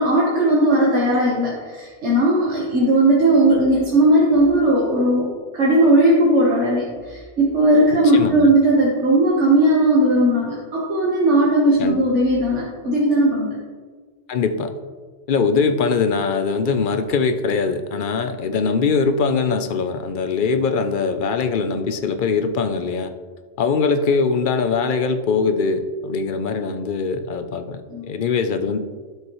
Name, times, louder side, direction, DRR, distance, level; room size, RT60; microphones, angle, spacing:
voice 1, 0.0-13.5 27.9-28.2, right 1 dB, 90° right, -4 dB, 1.6 m, -17 dB
voice 2, 7.9-8.5 11.8-12.0 14.3-14.8 15.3-23.1 23.6-28.8, left 5 dB, 55° left, 9 dB, 0.7 m, -22 dB
12.0 x 6.2 x 3.1 m, 1.5 s
omnidirectional pair, 1.2 m